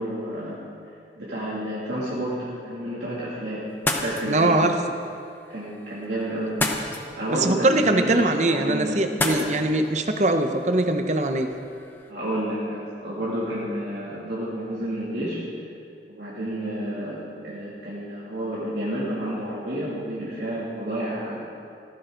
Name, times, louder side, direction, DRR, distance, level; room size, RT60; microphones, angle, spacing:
voice 1, 0.0-3.7 4.0-4.6 5.5-6.7 7.2-9.6 12.1-15.8 16.1-21.5, right 1 dB, 65° right, -8 dB, 2.7 m, -30 dB
sound 1, 3.7-12.1, left 2 dB, 10° left, 0.9 m, -34 dB
voice 2, 4.3-4.7 7.4-11.5, right 2 dB, 40° right, 7 dB, 0.8 m, -22 dB
16.5 x 14.0 x 3.9 m, 2.5 s
head